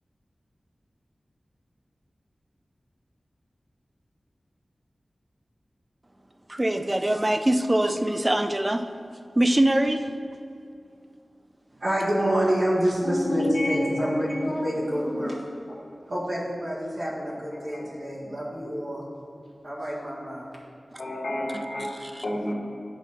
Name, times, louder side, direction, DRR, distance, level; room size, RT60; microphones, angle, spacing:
voice 1, 6.5-8.8 9.4-10.0 21.5-22.2, right 1 dB, 25° right, 8 dB, 0.4 m, -23 dB
voice 2, 11.8-15.4 16.1-19.1 19.6-20.5, equal, 60° right, -6 dB, 1.7 m, -27 dB
voice 3, 13.0-15.3 17.5-18.1 21.0-21.9 22.2-22.5, left 1 dB, 65° left, -2 dB, 1.3 m, -30 dB
8.1 x 5.0 x 4.2 m, 2.4 s
wide cardioid pair, 60°, 0 cm